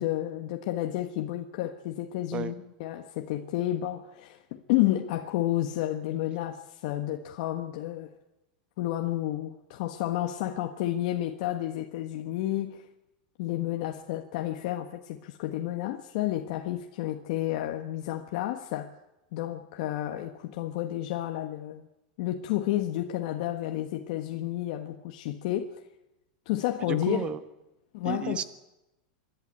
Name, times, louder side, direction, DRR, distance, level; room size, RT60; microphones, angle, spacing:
voice 1, 0.0-8.2 8.8-12.9 13.4-18.9 19.3-21.9 22.2-25.8 26.5-27.3 27.9-28.4, left 14 dB, 60° left, 1.3 m, -31 dB
voice 2, 26.9-27.4 28.0-28.4, right 8 dB, 25° right, 1.2 m, -32 dB
25.5 x 11.5 x 8.8 m
supercardioid pair, 150°, 4 cm